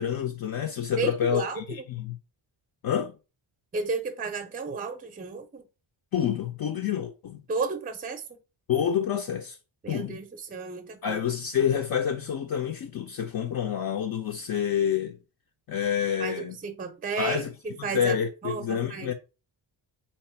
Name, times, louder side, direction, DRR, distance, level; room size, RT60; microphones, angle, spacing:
voice 1, 0.0-2.2 2.8-3.1 6.1-7.4 8.7-9.6 9.9-10.2 11.0-15.2 15.7-16.6 17.2-17.5 17.9-19.1, left 8 dB, 50° left, 0.6 m, -28 dB
voice 2, 1.0-1.8 3.7-5.6 7.5-8.2 9.8-11.2 16.2-18.2 18.4-19.1, right 4 dB, 20° right, 0.6 m, -33 dB
4.0 x 3.0 x 4.3 m
wide cardioid pair, 175°, 46 cm